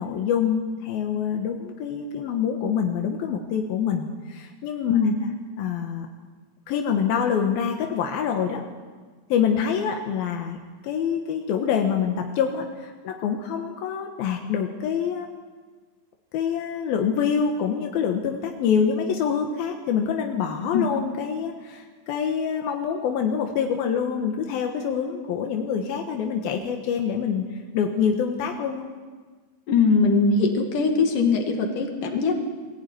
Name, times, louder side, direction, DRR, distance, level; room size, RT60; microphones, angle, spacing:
voice 1, 0.0-4.9 5.6-6.1 6.7-8.6 9.3-10.6 10.8-15.4 16.3-28.9, left 7 dB, 85° left, 3 dB, 3.2 m, -26 dB
voice 2, 29.7-32.3, left 4 dB, 65° left, 3 dB, 3.8 m, -21 dB
23.0 x 16.0 x 9.3 m, 1.4 s
omnidirectional pair, 4.1 m